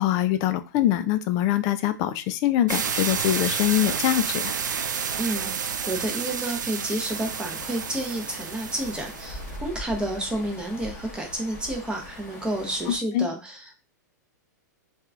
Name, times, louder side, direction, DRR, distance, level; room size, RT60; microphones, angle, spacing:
voice 1, 0.0-4.5 12.9-13.3, left 12 dB, 40° left, 11 dB, 0.3 m, -24 dB
sound 1, 2.7-9.6, right 6 dB, 85° right, 0.4 m, -30 dB
voice 2, 5.2-13.9, right 1 dB, 10° right, 2 dB, 0.7 m, -30 dB
sound 2, 7.1-13.0, left 1 dB, 25° left, 1.0 m, -41 dB
3.0 x 2.3 x 2.4 m, 0.32 s
hypercardioid pair, 120°, 10 cm